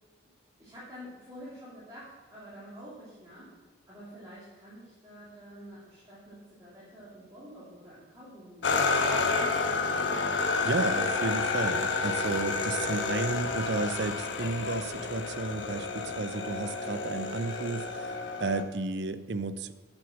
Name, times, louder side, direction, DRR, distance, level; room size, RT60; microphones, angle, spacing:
voice 1, 0.6-3.6 3.9-10.4, equal, 20° right, -9 dB, 2.8 m, -48 dB
sound 1, 8.6-18.6, left 4 dB, 85° left, 1.2 m, -30 dB
sound 2, 10.6-16.2, left 3 dB, 65° left, 0.8 m, -45 dB
voice 2, 10.6-19.7, right 3 dB, 65° right, 13 dB, 0.6 m, -33 dB
8.5 x 7.8 x 7.3 m, 1.4 s
head